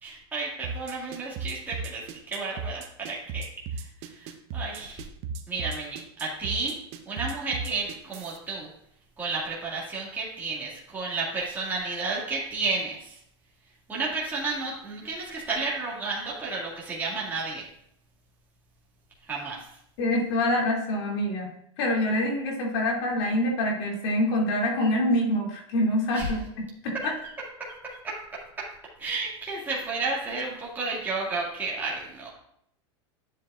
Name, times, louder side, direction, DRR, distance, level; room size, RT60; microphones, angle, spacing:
voice 1, 0.0-3.5 3.7-5.0 5.5-6.8 7.1-8.7 9.2-13.2 13.9-17.7 19.2-19.7 26.1-26.3 27.0-27.1 27.7-28.2 29.0-32.3, right 3 dB, 10° right, -5 dB, 2.0 m, -32 dB
sound 1, 0.6-8.4, right 4 dB, 45° right, 0.9 m, -35 dB
voice 2, 20.0-27.1, left 1 dB, 65° left, -1 dB, 2.6 m, -26 dB
11.0 x 7.4 x 2.5 m, 0.72 s
supercardioid pair, 140°, 15 cm